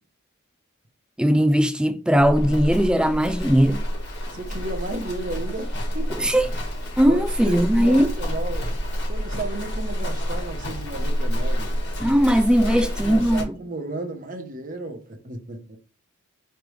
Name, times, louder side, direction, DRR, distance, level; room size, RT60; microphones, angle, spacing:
voice 1, 1.2-3.8 6.2-6.4 7.0-8.1 12.0-13.6, equal, 5° right, 0.3 m, -19 dB
Livestock farm animals working animals, 2.1-13.4, equal, 55° left, 1.4 m, -28 dB
voice 2, 4.3-6.5 7.0-8.7 9.1-11.8 12.6-15.8, right 2 dB, 40° right, 0.9 m, -34 dB
5.1 x 3.4 x 3.1 m
head